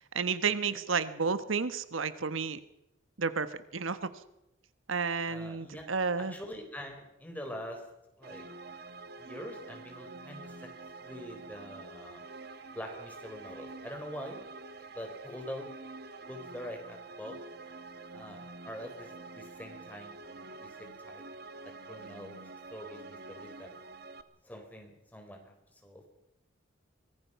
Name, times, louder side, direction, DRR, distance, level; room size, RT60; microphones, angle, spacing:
voice 1, 0.1-2.6 3.2-4.1 4.9-6.3, right 5 dB, 85° right, 13 dB, 1.2 m, -31 dB
voice 2, 5.3-7.8 8.2-8.5 9.2-10.7 11.0-12.2 12.7-14.4 14.9-15.7 16.2-17.4 18.1-21.2 21.6-22.4 22.7-23.8 24.4-25.5 25.8-26.0, equal, 10° left, 2 dB, 4.4 m, -44 dB
sound 1, 8.2-24.2, right 3 dB, 50° right, 1.4 m, -47 dB
24.5 x 19.5 x 5.8 m, 0.88 s
head